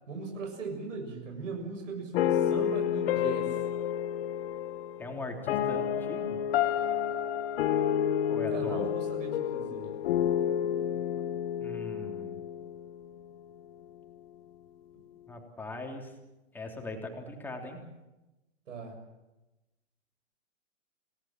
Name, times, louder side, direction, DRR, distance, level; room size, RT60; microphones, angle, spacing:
voice 1, 0.0-3.6 8.5-9.9 18.7-19.0, right 4 dB, 75° right, 2 dB, 7.3 m, -39 dB
sound 1, 2.1-13.3, left 9 dB, 50° left, 1.4 m, -30 dB
voice 2, 5.0-6.4 8.3-8.9 11.6-12.4 15.3-16.1 16.5-17.8, left 2 dB, 5° left, 1 dB, 3.3 m, -40 dB
28.5 x 18.0 x 7.5 m, 1.0 s
hypercardioid pair, 150°, 38 cm